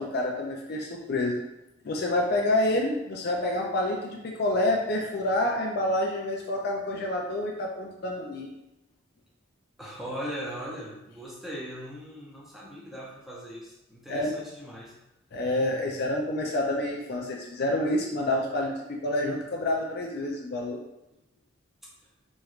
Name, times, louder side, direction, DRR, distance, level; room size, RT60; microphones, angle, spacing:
voice 1, 0.0-1.4 1.8-8.5 14.1-14.3 15.3-20.8, left 1 dB, 50° left, 0 dB, 0.4 m, -28 dB
voice 2, 9.8-14.9, equal, ahead, -6 dB, 0.6 m, -39 dB
3.1 x 3.1 x 2.4 m, 0.92 s
head